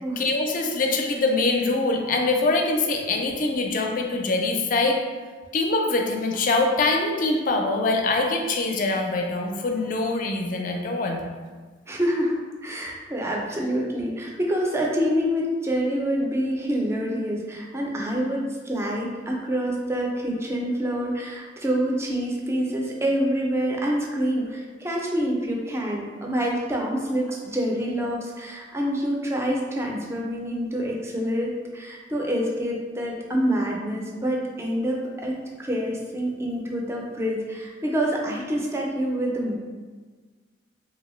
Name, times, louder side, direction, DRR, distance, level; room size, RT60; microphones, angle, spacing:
voice 1, 0.2-5.0 5.5-11.2, left 3 dB, 45° left, 2 dB, 0.4 m, -24 dB
voice 2, 11.9-12.3 12.6-39.6, equal, 15° right, -1 dB, 0.4 m, -26 dB
3.2 x 2.7 x 3.0 m, 1.4 s
head